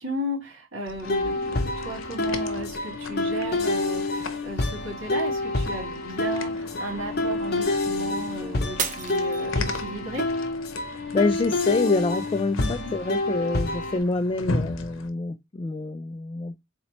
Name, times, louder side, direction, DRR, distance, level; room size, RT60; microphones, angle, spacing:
voice 1, 0.0-10.3 12.6-12.9, right 1 dB, 70° right, 2.5 m, -35 dB
sound 1, 0.8-15.1, left 3 dB, 90° left, 0.7 m, -39 dB
sound 2, 1.0-14.0, left 2 dB, 55° left, 0.8 m, -28 dB
Shatter, 8.8-10.1 10.6-11.1 11.6-11.7, right 7 dB, 40° right, 0.6 m, -32 dB
voice 2, 10.8-16.5, left 3 dB, 25° left, 0.3 m, -27 dB
4.0 x 3.0 x 3.0 m
head